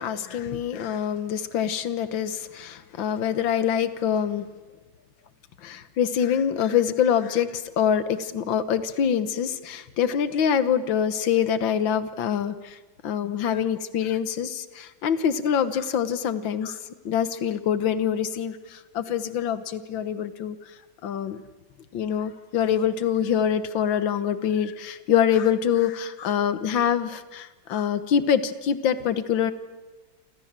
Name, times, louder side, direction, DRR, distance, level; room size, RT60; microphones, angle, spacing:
voice 1, 0.0-4.5 5.6-12.8 13.0-16.8 17.1-20.6 21.0-21.4 21.9-29.5, left 8 dB, 85° left, 12 dB, 1.9 m, -25 dB
30.0 x 26.0 x 7.5 m, 1.2 s
omnidirectional pair, 2.0 m